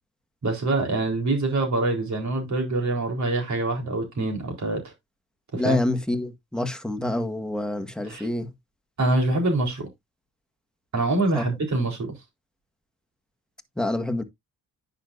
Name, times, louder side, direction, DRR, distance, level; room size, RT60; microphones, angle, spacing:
voice 1, 0.4-4.8 5.5-5.8 8.1-8.3 9.0-9.9 10.9-12.1, right 2 dB, 50° right, 4.1 m, -25 dB
voice 2, 5.5-8.5 11.3-11.4 13.8-14.2, left 1 dB, ahead, 1.8 m, -27 dB
9.9 x 6.6 x 2.6 m
supercardioid pair, 65°, 37 cm